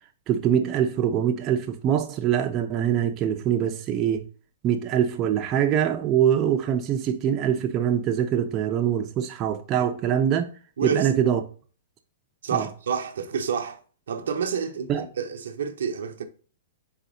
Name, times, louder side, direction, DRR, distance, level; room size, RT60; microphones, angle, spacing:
voice 1, 0.3-4.2 4.6-10.4 10.8-11.4 12.5-12.7 14.9-15.0, right 9 dB, 30° right, 0.6 m, -23 dB
voice 2, 10.8-11.1 12.4-13.8 14.1-16.2, right 6 dB, 75° right, 0.6 m, -29 dB
4.1 x 4.0 x 2.6 m
hypercardioid pair, 135°, 0 cm